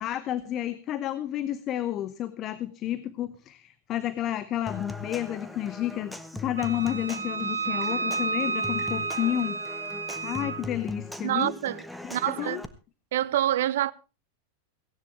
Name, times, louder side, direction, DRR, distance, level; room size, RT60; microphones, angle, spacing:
voice 1, 0.0-9.9 10.2-11.5 12.0-12.6, left 12 dB, 35° left, 0.9 m, -31 dB
Human voice / Acoustic guitar / Percussion, 4.7-12.7, left 2 dB, ahead, 1.3 m, -40 dB
Wind instrument woodwind instrument, 6.6-10.6, right 4 dB, 75° right, 1.0 m, -31 dB
voice 2, 11.2-11.8 12.1-12.6 13.1-13.9, right 12 dB, 55° right, 0.7 m, -26 dB
17.5 x 16.0 x 3.3 m
figure-of-eight pair, 90°, 0 cm